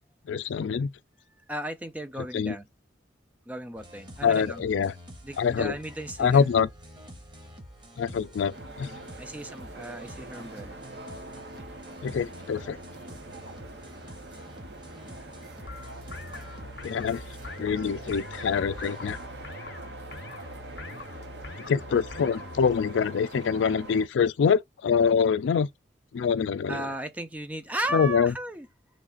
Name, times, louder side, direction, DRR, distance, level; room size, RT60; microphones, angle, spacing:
voice 1, 0.3-0.9 2.3-2.5 4.2-4.9 5.4-5.8 6.2-6.7 8.0-9.0 12.0-12.8 16.8-17.2 17.6-19.2 21.7-25.7 26.1-26.9 27.9-28.3, left 6 dB, 85° left, 0.4 m, -25 dB
voice 2, 1.5-2.7 3.5-4.6 5.2-6.5 9.2-10.8 15.1-16.7 26.7-28.7, right 1 dB, 10° right, 0.4 m, -36 dB
sound 1, 3.7-19.3, equal, 25° right, 1.0 m, -48 dB
sound 2, 8.5-24.1, right 2 dB, 70° right, 0.9 m, -44 dB
sound 3, 15.7-22.8, left 3 dB, 65° left, 0.7 m, -42 dB
3.2 x 2.4 x 3.7 m
head